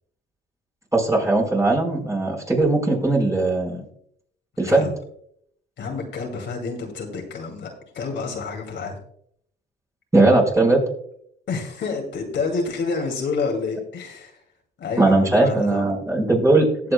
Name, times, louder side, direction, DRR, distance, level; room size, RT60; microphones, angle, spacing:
voice 1, 0.9-3.8 4.6-4.9 10.1-10.8 15.0-16.9, right 2 dB, 15° right, -1 dB, 4.4 m, -19 dB
voice 2, 5.8-9.0 11.5-14.4 14.8-15.8, left 4 dB, 65° left, 1 dB, 2.5 m, -28 dB
19.0 x 7.5 x 2.2 m, 0.68 s
cardioid pair, 90°, 20 cm